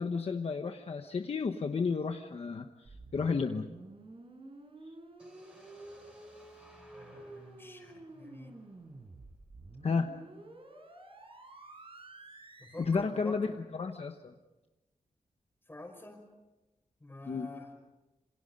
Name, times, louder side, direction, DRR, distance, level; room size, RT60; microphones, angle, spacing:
voice 1, 0.0-2.7 3.1-3.7 9.8-10.1 12.8-14.3 17.2-17.5, left 5 dB, 50° left, 5 dB, 1.1 m, -32 dB
sound 1, 2.8-12.8, right 2 dB, 45° right, 4.9 m, -51 dB
sound 2, 5.2-9.1, equal, 10° right, 6.4 m, -60 dB
voice 2, 6.9-8.5 12.6-13.5 15.7-16.2 17.0-17.7, left 2 dB, 15° left, 3 dB, 5.3 m, -47 dB
27.5 x 27.0 x 5.4 m, 1.1 s
wide cardioid pair, 140°, 13 cm